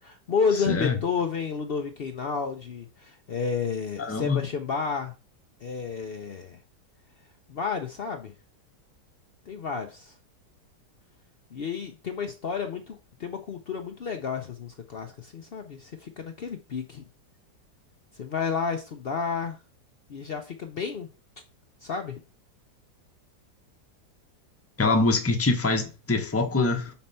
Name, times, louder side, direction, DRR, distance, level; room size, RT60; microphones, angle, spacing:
voice 1, 0.0-5.1 5.6-6.6 7.5-8.3 9.5-10.1 11.5-17.1 18.1-19.6 20.1-21.1 21.8-22.2, left 5 dB, 85° left, 0.5 m, -31 dB
voice 2, 0.7-1.0 4.0-4.4 24.8-26.9, left 3 dB, 15° left, 0.5 m, -24 dB
5.9 x 4.3 x 5.4 m
omnidirectional pair, 1.9 m